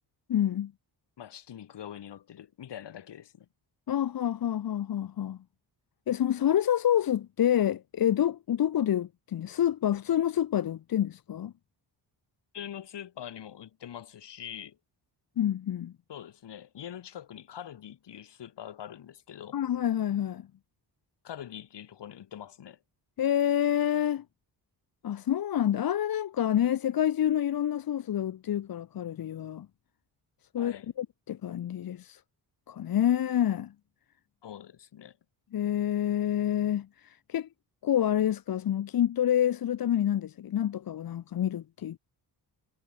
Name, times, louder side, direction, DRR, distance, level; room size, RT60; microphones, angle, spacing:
voice 1, 0.3-0.7 3.9-5.4 6.1-11.5 15.4-15.9 19.5-20.5 23.2-24.2 25.0-29.7 30.5-32.2 32.7-33.7 35.5-37.5 37.8-42.0, left 10 dB, 60° left, 0.9 m, -28 dB
voice 2, 1.2-3.5 12.5-14.8 16.1-19.6 21.2-22.8 30.6-30.9 34.4-35.2, left 10 dB, 85° left, 6.3 m, -44 dB
wide cardioid pair, 125°, 41 cm